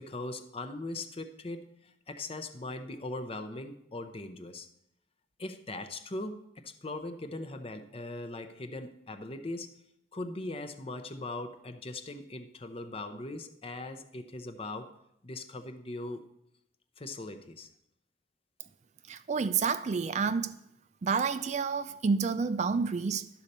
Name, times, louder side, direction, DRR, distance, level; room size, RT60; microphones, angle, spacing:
voice 1, 0.0-4.7 5.4-9.7 10.1-14.9 15.2-16.3 17.0-17.7, left 2 dB, 30° left, 0.7 m, -40 dB
voice 2, 19.1-20.6 21.0-23.3, right 5 dB, 40° right, 0.4 m, -29 dB
12.0 x 4.2 x 6.6 m
head